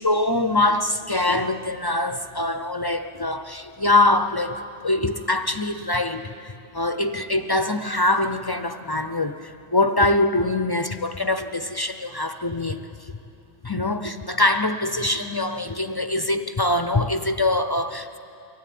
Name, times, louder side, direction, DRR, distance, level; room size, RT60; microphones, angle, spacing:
voice 1, 0.0-13.1 13.6-18.2, left 2 dB, 30° left, 9 dB, 0.4 m, -23 dB
23.5 x 17.0 x 9.3 m, 2.7 s
omnidirectional pair, 1.2 m